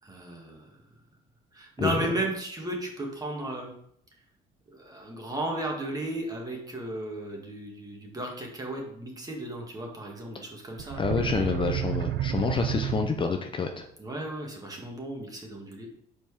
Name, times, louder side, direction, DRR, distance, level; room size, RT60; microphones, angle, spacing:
voice 1, 0.0-0.7 1.5-3.7 4.7-11.5 14.0-15.9, right 1 dB, 20° right, 0 dB, 1.7 m, -35 dB
sound 1, 10.8-13.6, right 12 dB, 75° right, 0.5 m, -31 dB
voice 2, 11.0-13.9, left 5 dB, 30° left, 5 dB, 0.6 m, -28 dB
5.3 x 4.4 x 4.8 m, 0.70 s
cardioid pair, 110°, 17 cm